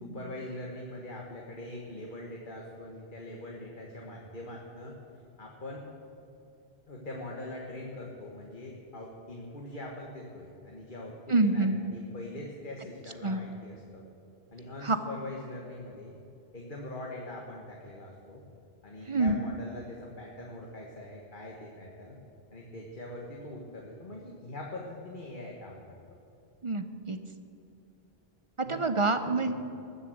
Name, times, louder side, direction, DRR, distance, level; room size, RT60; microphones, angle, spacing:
voice 1, 0.0-4.9 5.4-5.8 6.9-14.1 14.5-16.2 16.5-18.4 18.8-22.2 22.5-25.8 28.7-28.8 29.3-29.6, left 1 dB, 50° left, -2 dB, 1.6 m, -42 dB
voice 2, 11.3-11.8 13.2-13.4 14.8-15.0 19.1-19.4 26.6-27.2 28.6-29.7, right 3 dB, 35° right, 9 dB, 0.6 m, -27 dB
20.0 x 7.1 x 7.9 m, 2.7 s
omnidirectional pair, 1.1 m